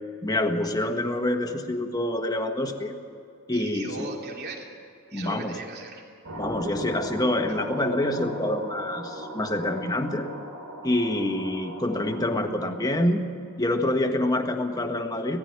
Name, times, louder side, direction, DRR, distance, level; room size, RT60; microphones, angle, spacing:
voice 1, 0.2-3.0 3.5-4.1 5.1-5.6 6.4-10.3 10.8-13.2 13.6-15.4, left 1 dB, 15° left, 5 dB, 1.5 m, -26 dB
voice 2, 3.5-4.7 5.1-6.0 6.3-6.4, right 3 dB, 50° right, 0 dB, 2.9 m, -38 dB
sound 1, 6.2-12.9, equal, 85° right, 5.2 m, -38 dB
18.5 x 15.0 x 9.6 m, 2.5 s
head